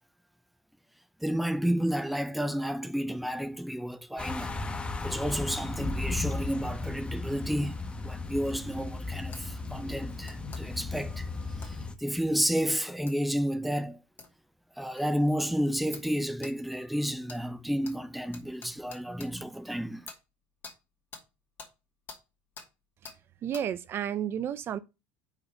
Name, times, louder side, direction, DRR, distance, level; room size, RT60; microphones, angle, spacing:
voice 1, 1.2-4.6 5.0-14.0 14.8-20.1, equal, ahead, 0.7 m, -31 dB
sound 1, 4.2-11.9, left 3 dB, 20° left, 1.1 m, -35 dB
sound 2, 9.3-9.4 10.2-10.6 11.6-11.7 13.1-13.2 14.2-14.3 15.0-15.1 15.9-16.1 16.4-16.5 17.3-17.4 17.8-18.0 18.3-19.3 20.1-20.2 20.6-20.8 21.1-21.3 21.6-21.7 22.1-22.2 22.6-22.7 23.0-23.2 23.5-23.7, left 5 dB, 35° left, 2.6 m, -46 dB
voice 2, 23.4-24.8, right 9 dB, 45° right, 0.5 m, -32 dB
5.8 x 4.1 x 5.7 m
hypercardioid pair, 85°, 6 cm